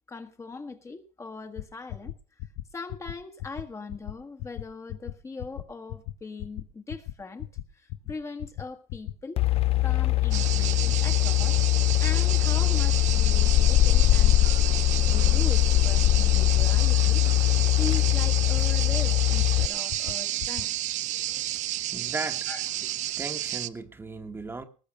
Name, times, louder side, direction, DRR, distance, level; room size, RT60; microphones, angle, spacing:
voice 1, 0.1-2.1 2.7-7.5 7.7-9.4 9.8-17.2 17.8-20.7 22.5-22.7, left 4 dB, 20° left, 1.4 m, -40 dB
sound 1, 1.6-1.7 1.9-2.1 2.4-2.6 2.9-3.1 3.4-3.6 3.9-4.1 4.4-4.6 4.9-5.1 5.4-5.6 5.9-6.1 6.4-6.6 6.9-7.1 7.4-7.6 7.9-8.1 8.4-8.6 8.9-9.1 9.4-9.6 9.9-10.1 10.4-10.6 10.9-11.1 11.4-11.6 11.9-12.1 12.4-12.6 12.9-13.1 13.4-13.6 13.9-14.1 14.4-14.6 14.9-15.1 15.4-15.6 15.9-16.1 16.4-16.6 16.9-17.1 17.4-17.6 17.9-18.1 18.4-18.6 18.9-19.1 19.4-19.6 19.9-20.1 20.4-20.6, left 15 dB, 75° left, 1.0 m, -35 dB
sound 2, 9.4-19.7, left 15 dB, 45° left, 0.6 m, -22 dB
sound 3, 10.3-23.7, right 14 dB, 60° right, 0.7 m, -32 dB
voice 2, 21.3-21.6 21.9-22.5 23.2-24.6, right 3 dB, 15° right, 1.4 m, -37 dB
20.0 x 6.9 x 6.4 m
cardioid pair, 120°, 14 cm